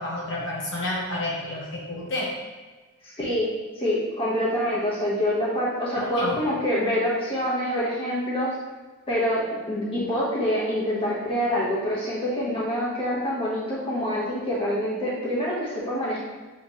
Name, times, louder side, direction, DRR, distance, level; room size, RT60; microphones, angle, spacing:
voice 1, 0.0-2.3 5.9-6.4, left 1 dB, 60° left, -5 dB, 1.4 m, -30 dB
voice 2, 3.0-3.5 3.7-8.5 9.1-16.2, equal, 25° left, -7 dB, 1.6 m, -26 dB
8.0 x 3.6 x 3.3 m, 1.3 s
head